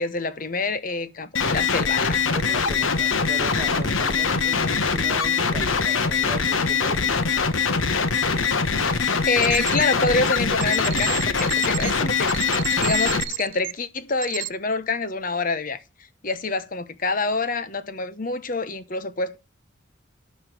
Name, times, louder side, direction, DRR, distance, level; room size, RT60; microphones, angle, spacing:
voice 1, 0.0-2.2 8.8-12.3 12.8-15.8 16.2-19.4, left 3 dB, 45° left, 1.0 m, -27 dB
sound 1, 1.3-13.2, left 5 dB, 85° left, 1.2 m, -23 dB
voice 2, 2.3-7.4, right 2 dB, 20° right, 2.8 m, -37 dB
sound 2, 9.3-9.8 10.6-13.7 14.2-14.5, right 16 dB, 75° right, 0.5 m, -31 dB
12.0 x 5.5 x 6.1 m
head